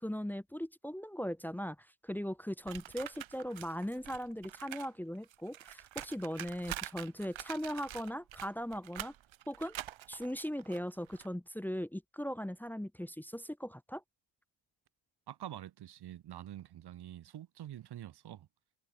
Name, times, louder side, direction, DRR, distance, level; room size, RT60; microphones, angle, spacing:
voice 1, 0.0-9.1 9.5-9.7 10.1-14.0, equal, 5° left, 1.1 m, -39 dB
sound 1, 2.7-4.9 5.2-11.3, right 13 dB, 75° right, 5.3 m, -46 dB
voice 2, 15.3-18.5, right 12 dB, 55° right, 1.2 m, -46 dB
cardioid pair, 110°, 47 cm